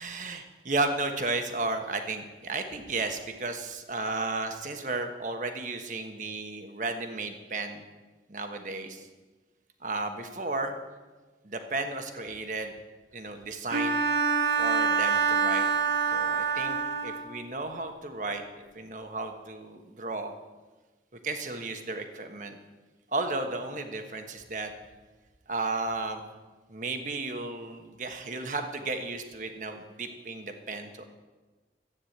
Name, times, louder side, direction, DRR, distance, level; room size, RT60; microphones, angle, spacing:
voice 1, 0.0-7.8 8.3-9.1 9.8-10.7 11.4-12.7 13.1-14.0 14.6-15.7 16.1-16.8 17.0-18.4 18.7-20.3 21.2-22.6 23.1-24.7 25.5-26.3 26.7-31.0, right 3 dB, 45° right, 6 dB, 1.3 m, -33 dB
Bowed string instrument, 13.7-17.4, right 6 dB, 70° right, 1.3 m, -26 dB
13.5 x 9.4 x 8.0 m, 1.3 s
head